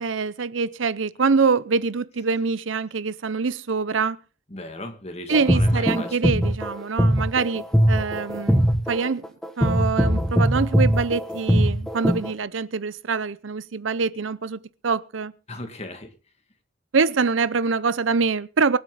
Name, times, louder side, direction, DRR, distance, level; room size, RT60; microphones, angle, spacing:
voice 1, 0.0-4.2 5.3-9.3 9.6-15.3 16.9-18.8, right 5 dB, 85° right, 0.7 m, -24 dB
voice 2, 4.5-6.2 15.5-16.1, left 2 dB, 35° left, 2.1 m, -37 dB
sound 1, 5.3-12.3, equal, ahead, 1.2 m, -21 dB
24.0 x 8.2 x 4.0 m
head